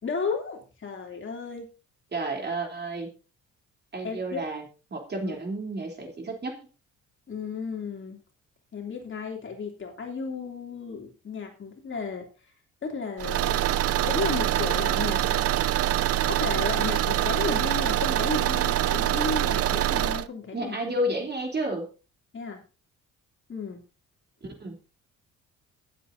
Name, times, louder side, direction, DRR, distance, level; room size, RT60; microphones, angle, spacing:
voice 1, 0.0-1.7 4.0-4.4 5.2-5.4 7.3-8.2 8.7-12.3 12.8-13.6 14.0-15.5 16.3-20.8 22.3-22.6 23.5-23.8, left 5 dB, 40° left, 2 dB, 2.9 m, -33 dB
voice 2, 2.1-3.1 3.9-4.6 4.9-6.6 20.5-21.9 24.4-24.8, right 1 dB, 35° right, 2 dB, 3.4 m, -31 dB
Car / Engine, 13.2-20.3, right 13 dB, 50° right, 0.5 m, -25 dB
23.5 x 8.0 x 2.7 m, 0.32 s
cardioid pair, 85°, 30 cm